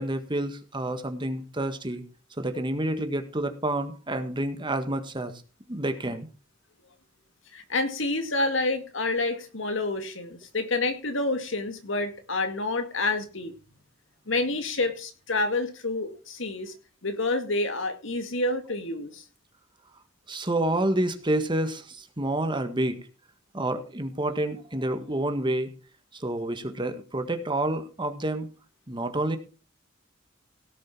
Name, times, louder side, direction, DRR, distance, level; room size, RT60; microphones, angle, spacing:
voice 1, 0.0-2.0 2.4-5.3 5.7-6.3 20.3-23.1 23.5-25.7 26.1-28.5 28.9-29.4, right 1 dB, 25° right, 8 dB, 1.6 m, -28 dB
voice 2, 7.5-13.5 14.3-16.7 17.0-19.2, left 2 dB, 70° left, 8 dB, 2.2 m, -28 dB
17.5 x 7.6 x 4.5 m, 0.34 s
head